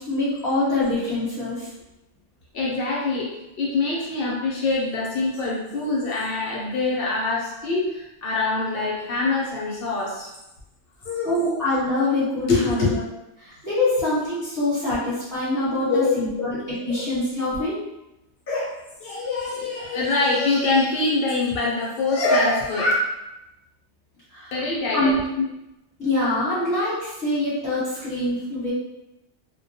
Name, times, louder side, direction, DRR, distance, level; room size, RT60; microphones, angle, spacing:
voice 1, 0.0-1.7 11.2-13.0 13.4-16.6 16.8-17.7 24.3-24.6 24.9-25.1 26.0-28.7, left 2 dB, 15° left, -12 dB, 1.0 m, -24 dB
voice 2, 2.5-10.3 11.0-11.3 12.5-13.0 15.9-16.5 16.8-17.0 18.5-18.7 19.0-22.9 24.5-25.4, left 3 dB, 60° left, -4 dB, 0.7 m, -24 dB
2.2 x 2.2 x 2.6 m, 0.93 s
omnidirectional pair, 1.2 m